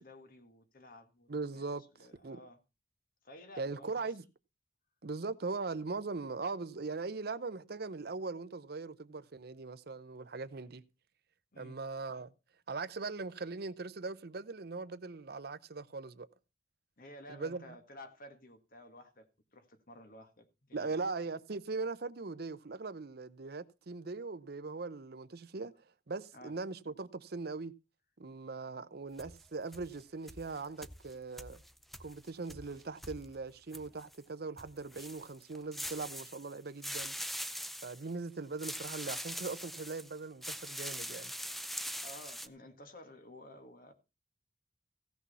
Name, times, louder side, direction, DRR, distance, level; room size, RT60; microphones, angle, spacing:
voice 1, 0.0-1.3 1.5-1.6 2.0-2.6 3.2-4.1 11.5-11.8 17.0-19.3 19.5-21.0 26.3-26.5 42.0-43.9, left 1 dB, 55° left, 1.8 m, -53 dB
voice 2, 1.3-2.4 3.6-4.2 5.0-10.8 11.6-12.3 12.7-16.3 17.3-17.6 20.7-25.7 26.1-27.7 28.2-31.6 32.0-37.1 37.8-41.3, right 3 dB, 60° right, 0.7 m, -40 dB
sound 1, 29.2-30.0 30.3-34.2 34.6-36.6 36.8-38.1 38.6-40.1 40.4-42.5, equal, ahead, 0.5 m, -43 dB
16.0 x 6.2 x 5.5 m
head